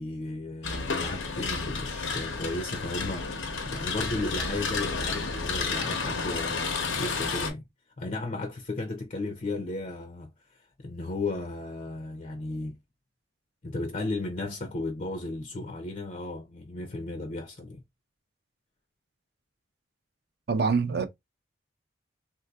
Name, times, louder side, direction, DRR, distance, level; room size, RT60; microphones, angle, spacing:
voice 1, 0.0-7.6 8.0-12.8 13.6-17.8, left 2 dB, 40° left, 0.5 m, -35 dB
sound 1, 0.6-7.5, left 4 dB, 85° left, 0.8 m, -31 dB
voice 2, 20.5-21.1, right 4 dB, 55° right, 0.5 m, -25 dB
3.5 x 2.6 x 2.3 m
head